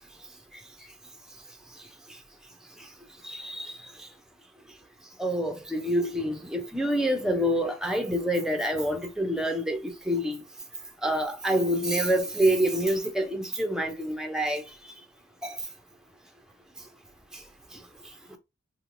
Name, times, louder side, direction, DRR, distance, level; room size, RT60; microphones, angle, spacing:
voice 1, 3.2-3.7 5.2-10.4 11.0-14.6 15.4-15.6, equal, 5° right, 0.4 m, -27 dB
3.7 x 2.9 x 2.5 m
head